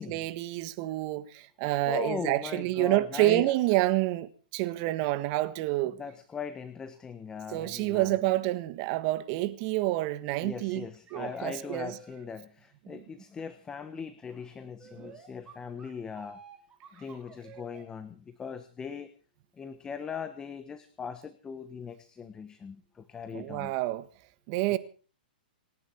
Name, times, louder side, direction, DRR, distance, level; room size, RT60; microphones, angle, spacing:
voice 1, 0.0-6.0 7.5-10.8 11.1-12.0 12.9-13.0 15.0-15.1 23.3-24.0 24.5-24.8, right 17 dB, 40° right, 1.5 m, -28 dB
voice 2, 1.9-3.5 6.0-8.2 10.4-16.4 16.9-19.1 19.6-23.7, left 6 dB, 15° left, 1.2 m, -39 dB
sound 1, 10.3-10.4 10.7-12.3 14.8-17.9, right 6 dB, 20° right, 3.6 m, -50 dB
28.5 x 10.5 x 4.5 m
hypercardioid pair, 140°, 5 cm